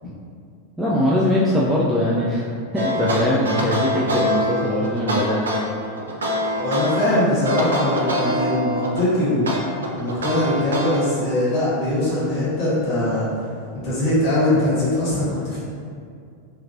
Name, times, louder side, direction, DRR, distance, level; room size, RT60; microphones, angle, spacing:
voice 1, 0.8-2.5 2.7-5.5, equal, 5° right, -7 dB, 0.4 m, -21 dB
sound 1, 2.8-7.1 7.4-9.1 9.5-11.0, equal, 70° right, 0.4 m, -24 dB
voice 2, 6.5-9.7 9.9-13.3 13.7-15.6, left 1 dB, 35° left, -10 dB, 1.4 m, -21 dB
2.9 x 2.5 x 2.8 m, 2.3 s
figure-of-eight pair, 90°, 0 cm